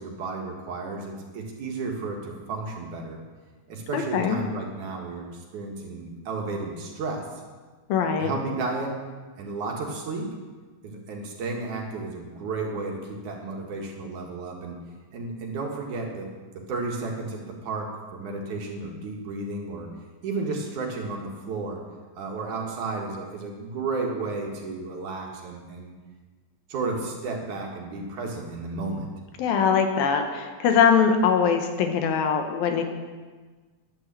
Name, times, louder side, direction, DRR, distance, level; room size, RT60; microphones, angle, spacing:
voice 1, 0.0-3.2 3.7-7.3 8.2-9.0 9.4-10.4 10.8-14.8 15.1-19.9 20.2-21.8 22.1-25.9 26.7-29.1, right 3 dB, 60° right, 0 dB, 3.1 m, -33 dB
voice 2, 3.9-4.4 7.9-8.3 29.4-32.8, left 6 dB, 85° left, 4 dB, 3.1 m, -22 dB
11.5 x 10.0 x 7.6 m, 1.4 s
omnidirectional pair, 4.1 m